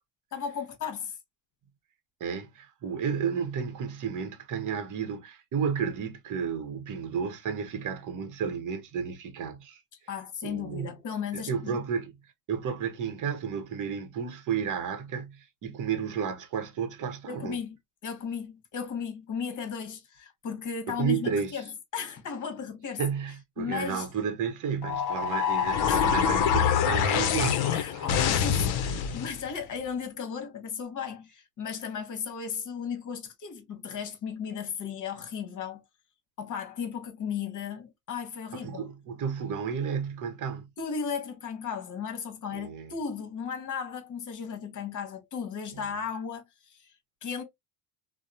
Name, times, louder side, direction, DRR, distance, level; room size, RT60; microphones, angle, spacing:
voice 1, 0.3-1.2 10.1-11.8 17.3-17.8 18.0-23.0 23.6-24.1 25.9-26.1 27.7-35.8 36.4-38.8 40.8-46.9 47.2-47.4, left 6 dB, 40° left, 1.0 m, -35 dB
voice 2, 2.2-9.8 10.4-10.9 11.3-12.1 12.5-17.6 20.9-21.6 23.0-28.1 38.5-40.7 42.5-42.9 45.7-45.9, right 6 dB, 45° right, 0.8 m, -32 dB
sound 1, 24.8-29.4, left 8 dB, 60° left, 0.6 m, -25 dB
2.7 x 2.1 x 2.4 m
supercardioid pair, 90°, 44 cm